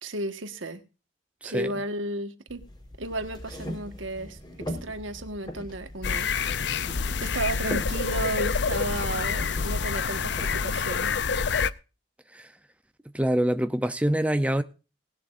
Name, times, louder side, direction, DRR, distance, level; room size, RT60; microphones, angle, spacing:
voice 1, 0.0-0.8 1.4-2.6 3.0-4.4 4.7-6.7 7.2-11.2, right 1 dB, 80° right, 1.6 m, -33 dB
voice 2, 1.4-1.7 12.3-12.5 13.1-14.6, right 1 dB, 5° right, 0.6 m, -25 dB
sound 1, 2.5-10.6, equal, 20° left, 4.3 m, -40 dB
sound 2, 6.0-11.7, left 5 dB, 60° left, 0.6 m, -27 dB
19.5 x 11.0 x 2.6 m
head